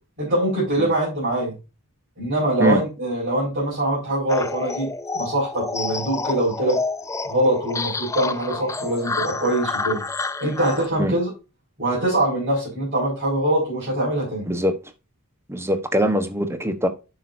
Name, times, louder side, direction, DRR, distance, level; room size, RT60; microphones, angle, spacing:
voice 1, 0.2-1.6 2.2-4.9 5.1-6.8 7.2-10.0 10.4-11.3 11.8-14.5, right 1 dB, 45° right, 5.2 m, -23 dB
sound 1, 4.3-10.9, left 3 dB, 15° left, 0.5 m, -29 dB
voice 2, 15.5-16.9, equal, 10° right, 1.1 m, -22 dB
10.0 x 6.1 x 2.6 m
head